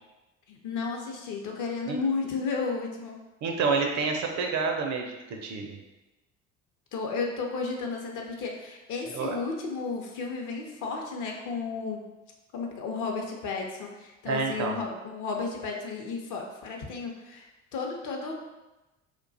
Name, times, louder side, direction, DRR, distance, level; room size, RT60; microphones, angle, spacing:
voice 1, 0.5-3.2 6.9-12.0 12.5-17.5 17.7-18.3, left 4 dB, 50° left, 1 dB, 0.6 m, -33 dB
voice 2, 3.4-5.8 9.1-9.4 14.3-14.8, right 4 dB, 45° right, 2 dB, 0.5 m, -28 dB
2.3 x 2.2 x 2.6 m, 1.1 s
hypercardioid pair, 65°, 39 cm